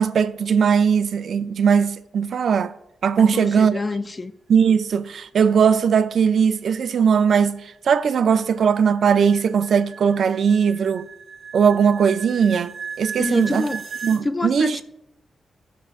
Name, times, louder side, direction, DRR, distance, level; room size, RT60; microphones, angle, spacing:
voice 1, 0.0-2.7 3.0-3.7 4.5-11.0 11.5-13.7 14.0-14.8, right 6 dB, 65° right, 0.4 m, -19 dB
voice 2, 3.2-4.3 13.2-13.8 14.2-14.8, left 2 dB, 20° left, 0.3 m, -27 dB
sound 1, 7.1-14.2, right 6 dB, 40° right, 1.2 m, -37 dB
16.5 x 6.4 x 2.5 m
wide cardioid pair, 140°, 0 cm